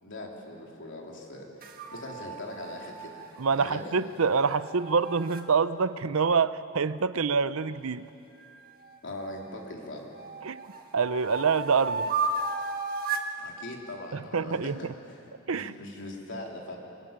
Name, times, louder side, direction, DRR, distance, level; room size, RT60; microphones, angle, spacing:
voice 1, 0.0-3.2 3.5-3.9 9.0-10.1 13.4-16.8, left 1 dB, 60° left, 0 dB, 3.6 m, -41 dB
sound 1, 1.6-5.5 8.4-9.6 10.1-13.3, right 3 dB, 45° right, 1.6 m, -35 dB
voice 2, 3.4-8.1 10.4-10.6 10.9-12.1 14.1-14.8 15.5-15.7, right 5 dB, 70° right, 14 dB, 0.7 m, -26 dB
22.5 x 20.5 x 8.9 m, 2.9 s
head